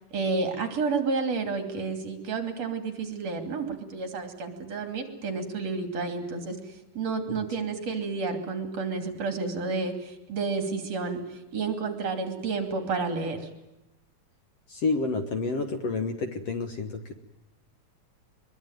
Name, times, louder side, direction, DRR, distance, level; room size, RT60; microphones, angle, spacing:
voice 1, 0.1-6.6 7.0-13.4, right 4 dB, 50° right, 6 dB, 3.8 m, -30 dB
voice 2, 14.7-17.1, left 3 dB, 55° left, 7 dB, 2.1 m, -29 dB
23.5 x 22.5 x 9.3 m, 0.94 s
omnidirectional pair, 3.8 m